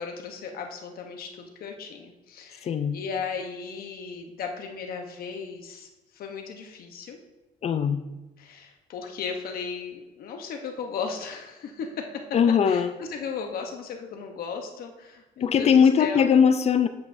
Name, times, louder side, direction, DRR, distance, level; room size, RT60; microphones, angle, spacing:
voice 1, 0.0-7.2 8.4-12.3 12.7-16.3, left 5 dB, 60° left, 3 dB, 1.0 m, -36 dB
voice 2, 2.6-3.0 7.6-8.0 12.3-12.9 15.4-16.9, left 7 dB, 40° left, 11 dB, 0.5 m, -20 dB
8.5 x 5.2 x 2.7 m, 1.0 s
cardioid pair, 110°, 17 cm